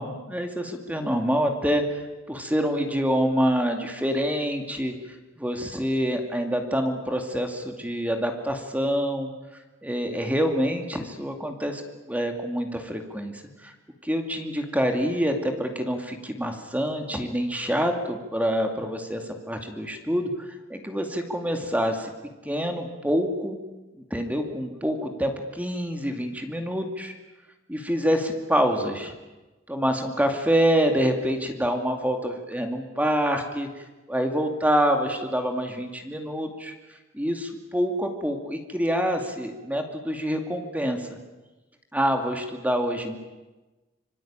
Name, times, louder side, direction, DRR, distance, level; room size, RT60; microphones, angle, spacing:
voice 1, 0.0-4.9 5.4-9.3 9.8-11.8 12.1-13.7 14.0-22.1 22.4-23.6 23.9-27.1 27.7-29.1 29.7-33.7 34.1-36.7 37.1-41.2 41.9-43.2, equal, 10° right, 4 dB, 2.4 m, -26 dB
26.0 x 24.5 x 8.9 m, 1.1 s
head